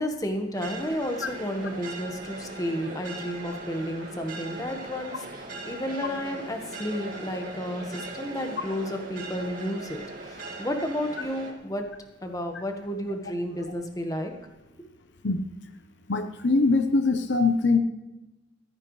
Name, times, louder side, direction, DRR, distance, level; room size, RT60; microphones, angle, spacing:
voice 1, 0.0-11.8 12.2-14.3, equal, 20° left, 4 dB, 1.4 m, -32 dB
sound 1, 0.5-11.5, right 2 dB, 50° right, 2.2 m, -39 dB
voice 2, 16.1-17.8, left 3 dB, 70° left, 8 dB, 0.9 m, -22 dB
15.0 x 14.0 x 3.3 m, 1.0 s
head